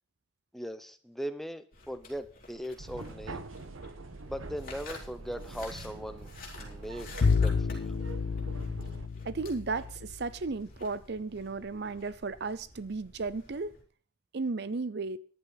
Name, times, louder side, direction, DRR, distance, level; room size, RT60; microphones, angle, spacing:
voice 1, 0.5-3.4 4.3-6.3 6.6-7.1 7.4-8.0, equal, ahead, 0.8 m, -39 dB
Apple Bite Chew Eat., 1.7-13.8, left 2 dB, 45° left, 4.2 m, -51 dB
sound 1, 2.8-9.1, right 2 dB, 85° right, 1.2 m, -44 dB
Bowed string instrument, 7.2-10.3, left 4 dB, 65° left, 0.5 m, -29 dB
voice 2, 9.2-13.8 14.3-15.2, right 3 dB, 55° right, 0.6 m, -34 dB
14.5 x 11.0 x 4.0 m
head